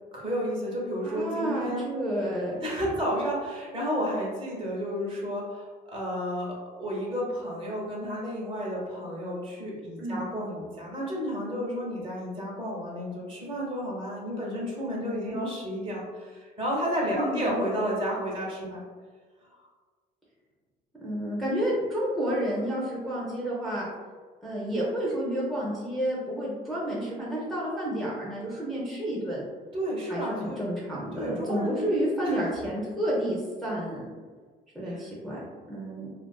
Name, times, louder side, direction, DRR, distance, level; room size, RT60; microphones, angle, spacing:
voice 1, 0.1-1.8 2.6-18.8 19.5-19.7 29.7-30.6 31.1-31.9 32.2-32.4 34.8-35.0, equal, 30° right, -4 dB, 0.8 m, -32 dB
voice 2, 1.0-2.6 10.0-10.2 15.3-15.5 17.1-17.5 21.0-23.9 24.4-29.5 30.1-34.1 34.7-36.1, right 1 dB, ahead, -7 dB, 0.6 m, -30 dB
2.4 x 2.3 x 2.3 m, 1.5 s
cardioid pair, 110°, 17 cm